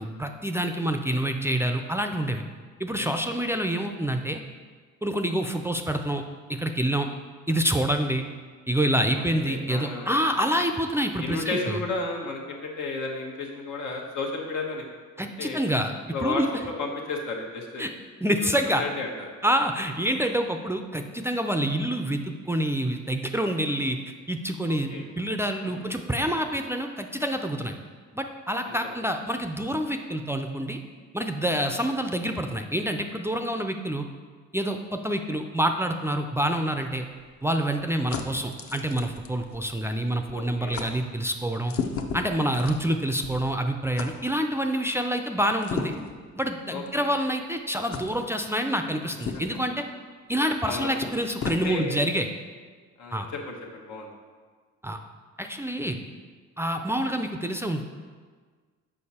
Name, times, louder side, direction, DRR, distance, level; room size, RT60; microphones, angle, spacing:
voice 1, 0.0-2.4 2.8-4.4 5.0-6.2 6.5-7.1 7.5-8.2 8.7-11.8 15.2-15.9 16.2-16.5 17.8-17.9 18.2-18.8 19.4-22.2 22.5-27.7 28.1-30.8 31.1-34.0 34.5-37.1 37.4-41.7 42.1-45.9 46.4-49.8 50.3-52.3 53.1-53.3 54.8-55.0 55.4-56.0 56.6-57.8, right 1 dB, 10° right, 4 dB, 0.4 m, -27 dB
voice 2, 9.1-10.5 11.2-14.9 15.4-15.6 16.1-16.4 16.8-17.8 18.7-19.3 24.7-25.0 25.6-25.9 28.7-28.9 40.3-40.8 46.7-47.0 50.6-51.0 51.6-52.0 53.0-54.1, left 3 dB, 85° left, -1 dB, 1.3 m, -33 dB
sound 1, 36.7-40.0 40.3-40.4 40.7-40.9 41.6-43.5 44.0-44.1 45.6-46.2 46.9-47.0 47.9-48.1 49.2-49.6 50.6-50.7 51.0-51.6, left 5 dB, 50° left, 0.7 m, -35 dB
6.6 x 5.1 x 4.2 m, 1.5 s
cardioid pair, 90°, 30 cm